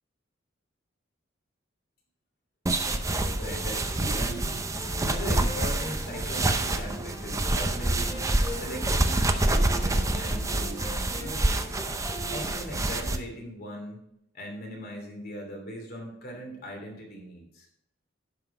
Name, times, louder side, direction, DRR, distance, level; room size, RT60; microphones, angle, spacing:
sound 1, 2.7-13.2, right 2 dB, 15° right, 0.6 m, -27 dB
sound 2, 2.9-12.6, left 1 dB, 20° left, 1.2 m, -43 dB
voice 1, 3.4-4.4 5.0-11.7 12.3-14.0 14.3-17.7, equal, 50° left, 1 dB, 2.8 m, -39 dB
10.5 x 5.9 x 4.9 m, 0.77 s
head